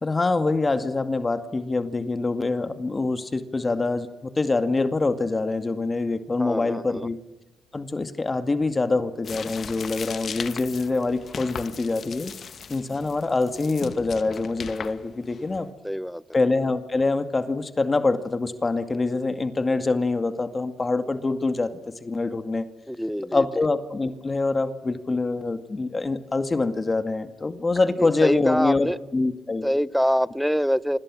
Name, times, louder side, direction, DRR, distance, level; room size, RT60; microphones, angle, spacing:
voice 1, 0.0-4.1 4.4-7.2 7.7-12.3 12.7-15.7 16.3-21.7 22.0-22.7 23.3-29.7, left 3 dB, 25° left, 9 dB, 2.1 m, -25 dB
voice 2, 6.4-7.1 15.8-16.2 22.9-23.4 28.0-29.0 29.6-31.0, equal, ahead, 18 dB, 0.9 m, -25 dB
sound 1, 9.2-15.6, left 6 dB, 50° left, 1.8 m, -38 dB
30.0 x 26.0 x 6.3 m, 1.0 s
cardioid pair, 90°, 0 cm